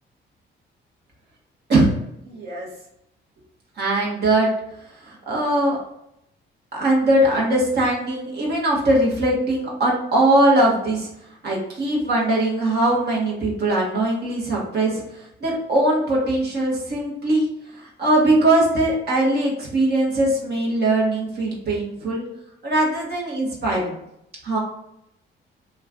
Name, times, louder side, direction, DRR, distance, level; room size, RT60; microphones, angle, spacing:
voice 1, 2.2-2.7 3.8-4.5 5.0-5.8 6.7-11.1 11.4-17.5 17.7-22.2 22.6-24.0 24.4-24.6, right 1 dB, 55° right, -4 dB, 1.2 m, -21 dB
3.0 x 2.3 x 3.7 m, 0.80 s
cardioid pair, 90°, 20 cm